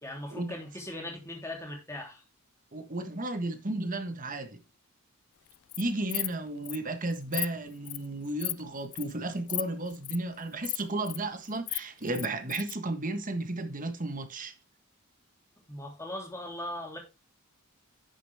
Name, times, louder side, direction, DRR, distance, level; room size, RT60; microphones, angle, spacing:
voice 1, 0.0-2.2 15.7-17.0, left 1 dB, 15° left, 3.1 m, -39 dB
voice 2, 2.7-4.6 5.8-14.5, right 2 dB, 35° right, 1.4 m, -33 dB
Insect, 5.5-5.8 6.1-6.3 6.6-6.8 7.1-7.5 7.8-8.1 8.4-8.6 8.9-9.1 9.5-9.6 9.9-10.2 10.6-11.2 11.5-12.7, left 22 dB, 80° left, 0.4 m, -34 dB
10.0 x 7.0 x 3.5 m
head